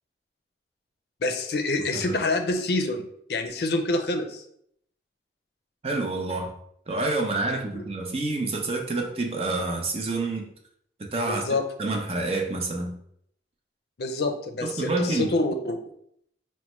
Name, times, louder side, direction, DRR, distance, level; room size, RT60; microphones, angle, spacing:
voice 1, 1.2-4.4 7.5-7.6 11.2-11.6 14.0-15.8, left 2 dB, 65° left, 6 dB, 0.5 m, -27 dB
voice 2, 5.8-6.5 6.9-10.5 11.0-11.4 11.8-13.0 14.6-15.3, right 2 dB, 35° right, 2 dB, 0.5 m, -28 dB
5.4 x 2.1 x 3.0 m, 0.70 s
head